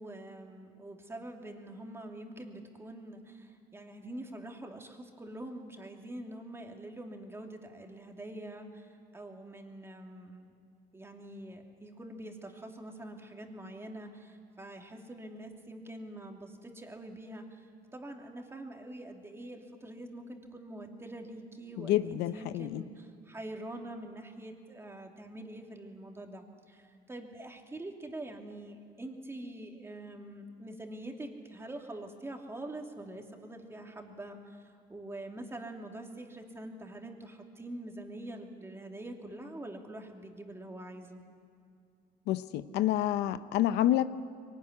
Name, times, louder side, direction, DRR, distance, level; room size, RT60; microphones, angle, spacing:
voice 1, 0.0-10.5 10.9-17.7 17.9-41.2, right 1 dB, 15° right, 2 dB, 2.8 m, -45 dB
voice 2, 21.8-22.8 42.3-44.0, left 13 dB, 85° left, 13 dB, 0.8 m, -28 dB
23.0 x 18.5 x 9.8 m, 2.5 s
cardioid pair, 110°, 17 cm